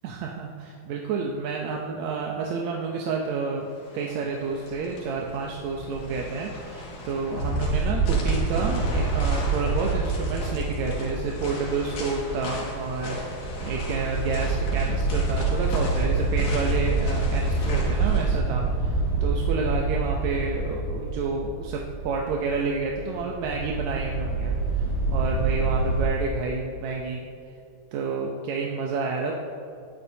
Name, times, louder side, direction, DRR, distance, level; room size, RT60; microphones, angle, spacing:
voice 1, 0.0-3.7 3.9-27.3 27.9-29.3, right 4 dB, 75° right, 0 dB, 2.0 m, -30 dB
sound 1, 3.7-18.3, left 1 dB, 85° left, 3.5 m, -37 dB
sound 2, 7.3-26.0, right 3 dB, 50° left, 4.5 m, -27 dB
19.5 x 9.9 x 2.8 m, 2.5 s
omnidirectional pair, 3.6 m